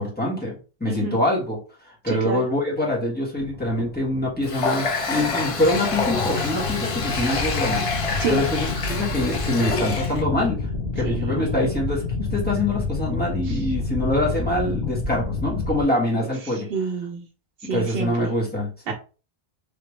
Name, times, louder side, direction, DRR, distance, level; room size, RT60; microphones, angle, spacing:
voice 1, 0.0-7.9 8.3-10.7 10.9-16.7 17.7-18.9, left 1 dB, 10° left, -5 dB, 1.5 m, -25 dB
voice 2, 0.9-1.2 2.1-2.4 8.2-8.4 11.0-11.4 13.5-13.6 16.4-17.2 17.6-18.1 18.9-19.0, right 5 dB, 70° right, 1 dB, 0.8 m, -28 dB
sound 1, 3.4-15.8, left 3 dB, 70° left, 1.1 m, -29 dB
Water tap faucet, 4.4-10.2, left 3 dB, 40° left, 0.5 m, -27 dB
3.6 x 2.9 x 3.1 m, 0.35 s
omnidirectional pair, 1.1 m